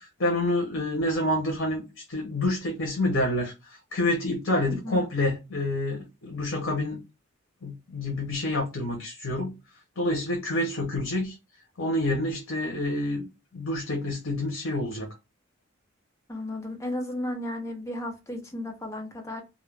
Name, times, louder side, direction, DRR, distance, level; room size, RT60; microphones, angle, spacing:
voice 1, 0.0-3.5 3.9-7.0 7.6-9.5 10.0-11.4 11.8-13.2 13.5-15.1, left 1 dB, 75° left, 0.8 m, -28 dB
voice 2, 4.7-5.1 16.3-19.4, left 1 dB, 15° left, 0.6 m, -34 dB
2.4 x 2.1 x 3.2 m
head